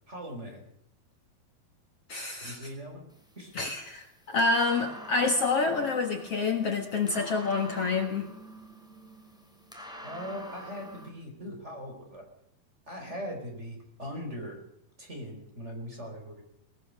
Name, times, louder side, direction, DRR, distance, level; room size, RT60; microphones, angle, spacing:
voice 1, 0.1-0.6 2.4-3.0 3.4-3.5 10.0-12.2 12.9-14.6 15.0-16.4, equal, 15° right, 2 dB, 4.7 m, -40 dB
voice 2, 2.1-2.6 3.5-8.3, left 4 dB, 50° left, 4 dB, 2.0 m, -28 dB
sound 1, 3.1-11.1, equal, ahead, 2.9 m, -47 dB
21.0 x 20.0 x 6.6 m, 0.72 s
omnidirectional pair, 4.4 m